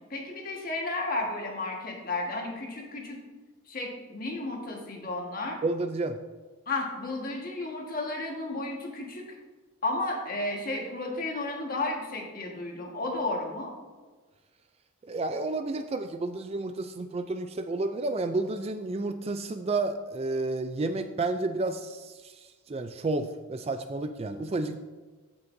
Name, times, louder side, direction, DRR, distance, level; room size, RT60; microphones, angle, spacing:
voice 1, 0.1-3.2 3.7-5.6 6.7-9.3 9.8-13.7, left 2 dB, 40° left, 0 dB, 1.5 m, -33 dB
voice 2, 5.6-6.2 15.1-22.4 22.7-24.8, right 2 dB, 30° right, 9 dB, 0.3 m, -31 dB
15.0 x 5.7 x 2.6 m, 1.3 s
head